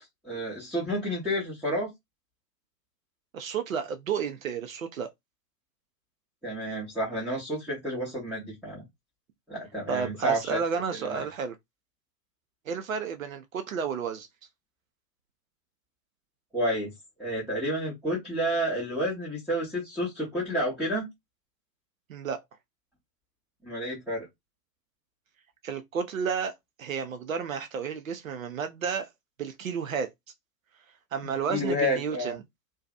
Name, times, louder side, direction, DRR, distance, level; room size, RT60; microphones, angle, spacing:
voice 1, 0.2-1.9 6.4-8.8 9.5-10.6 10.9-11.2 16.5-16.9 17.2-21.1 23.6-24.3 31.5-32.4, equal, ahead, 0.8 m, -30 dB
voice 2, 3.3-5.1 9.9-11.6 12.7-14.3 22.1-22.4 25.6-29.1 29.4-30.1 31.1-32.4, right 6 dB, 55° right, 0.6 m, -32 dB
2.6 x 2.3 x 2.3 m
figure-of-eight pair, 110°, 49 cm